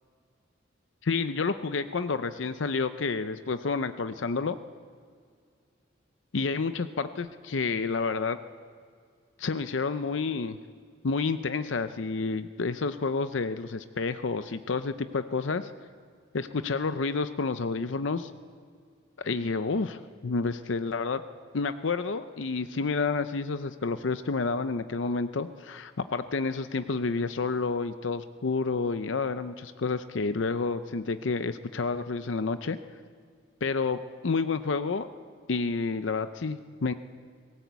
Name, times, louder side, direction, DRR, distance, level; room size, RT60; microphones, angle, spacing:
voice 1, 1.0-4.6 6.3-8.4 9.4-10.6 11.0-15.7 16.3-18.3 19.2-21.2 21.5-32.8 33.6-35.1 35.5-36.9, left 4 dB, 70° left, 11 dB, 0.6 m, -29 dB
18.0 x 17.5 x 8.2 m, 2.1 s
head